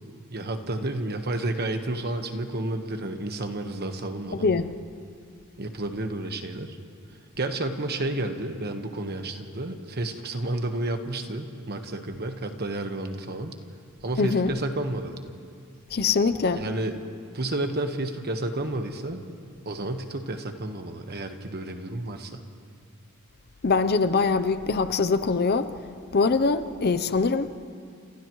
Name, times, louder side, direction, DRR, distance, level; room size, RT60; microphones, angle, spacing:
voice 1, 0.3-4.5 5.6-6.8 7.4-13.6 14.0-15.1 16.5-17.0 17.3-19.2 19.6-22.4, right 2 dB, 50° right, 1.3 m, -31 dB
voice 2, 4.3-4.7 14.2-14.5 15.9-16.6 23.6-25.7 26.1-27.5, left 4 dB, 45° left, 0.7 m, -23 dB
30.0 x 27.5 x 3.1 m
head